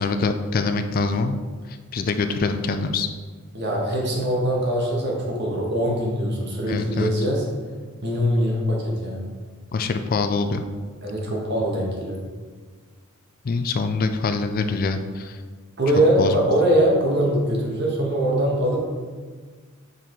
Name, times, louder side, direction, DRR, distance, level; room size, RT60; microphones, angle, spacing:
voice 1, 0.0-1.4 1.9-3.1 6.7-7.1 9.7-10.6 13.4-15.4 16.2-16.4, left 4 dB, 45° left, 8 dB, 0.4 m, -24 dB
voice 2, 3.5-7.5 8.0-9.3 11.0-12.2 15.8-18.8, right 1 dB, 50° right, -2 dB, 1.5 m, -22 dB
5.5 x 4.8 x 4.6 m, 1.5 s
head